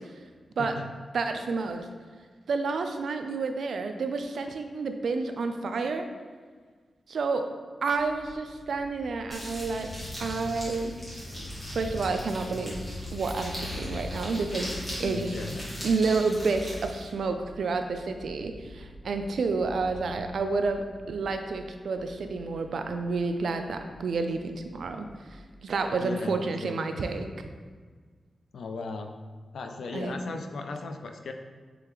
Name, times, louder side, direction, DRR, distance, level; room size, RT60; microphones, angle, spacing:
voice 1, 1.1-1.9 2.5-6.1 7.1-7.5 7.8-9.9 10.2-10.9 11.7-12.8 13.1-15.4 15.8-25.1 25.6-27.3 29.9-30.2, right 4 dB, 75° right, 7 dB, 0.3 m, -29 dB
sound 1, 7.9-25.7, left 2 dB, 50° left, 0.7 m, -43 dB
sound 2, 9.3-17.1, equal, 10° left, 1.5 m, -41 dB
voice 2, 15.0-15.7 26.0-26.8 28.5-29.2 29.5-31.3, left 3 dB, 85° left, 5 dB, 0.3 m, -37 dB
3.8 x 3.2 x 3.0 m, 1.5 s
wide cardioid pair, 105°, 0 cm